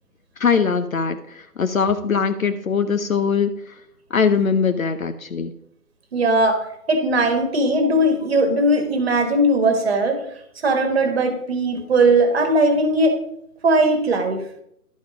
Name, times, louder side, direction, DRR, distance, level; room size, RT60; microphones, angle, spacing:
voice 1, 0.4-3.8 4.1-5.5, left 6 dB, 60° left, 9 dB, 0.7 m, -21 dB
voice 2, 6.1-6.6 6.9-10.2 10.6-13.2 13.6-14.4, right 1 dB, 40° right, 7 dB, 1.5 m, -18 dB
11.5 x 5.5 x 4.9 m, 0.75 s
figure-of-eight pair, 150°, 47 cm